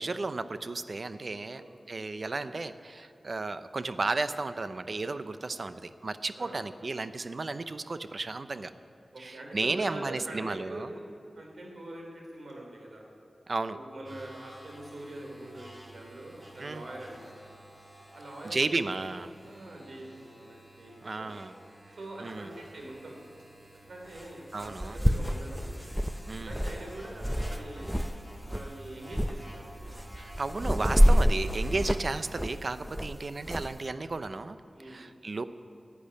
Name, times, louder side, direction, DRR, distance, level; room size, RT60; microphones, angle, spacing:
voice 1, 0.0-8.7 9.2-10.9 13.5-13.8 16.6-16.8 18.4-19.3 21.0-21.5 22.2-22.5 24.5-25.0 26.3-26.5 30.2-34.6 34.9-35.4, right 3 dB, 55° right, 12 dB, 0.5 m, -33 dB
voice 2, 1.5-2.6 5.4-5.7 6.4-6.6 9.1-11.0 11.4-13.1 13.7-17.2 18.1-19.1 19.4-21.3 22.0-23.2 23.9-25.7 26.5-28.0 28.5-30.0 31.7-31.9 34.8-35.0, right 1 dB, 85° right, 0 dB, 3.0 m, -44 dB
sound 1, 14.0-32.4, right 1 dB, 20° right, 2.6 m, -52 dB
sound 2, 22.3-22.4 24.2-24.3 24.6-28.1 28.4-28.7 29.1-29.4 29.8-33.7, equal, ahead, 0.5 m, -27 dB
10.5 x 8.5 x 10.0 m, 2.5 s
wide cardioid pair, 75°, 0 cm